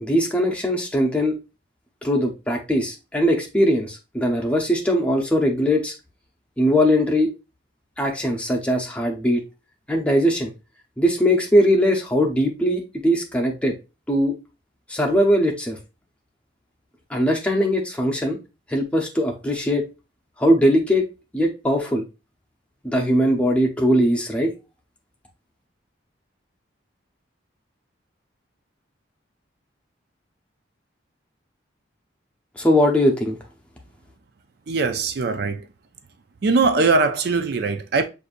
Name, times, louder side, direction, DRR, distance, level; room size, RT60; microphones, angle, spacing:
voice 1, 0.0-1.4 2.0-5.9 6.6-7.3 8.0-9.4 9.9-10.5 11.0-13.7 14.1-14.3 14.9-15.8 17.1-18.4 18.7-19.8 20.4-21.1 21.3-22.0 22.8-24.5 32.6-33.4, equal, 5° left, 0.7 m, -20 dB
voice 2, 34.7-35.6 36.4-38.0, right 3 dB, 55° right, 0.4 m, -21 dB
6.5 x 2.6 x 2.5 m
head